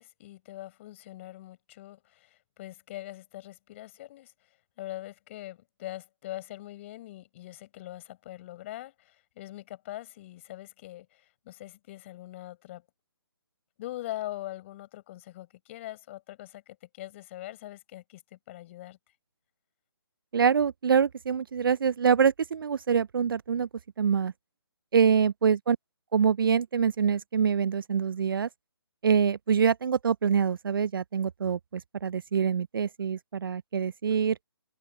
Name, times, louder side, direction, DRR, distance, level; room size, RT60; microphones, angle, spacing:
voice 1, 0.0-4.5 4.8-12.8 13.8-19.0 25.0-25.2, left 15 dB, 30° left, 6.1 m, -42 dB
voice 2, 20.3-23.7 24.0-24.3 24.9-25.8 26.1-28.5 29.0-34.4, right 7 dB, 60° right, 0.4 m, -25 dB
open air
figure-of-eight pair, 150°, 13 cm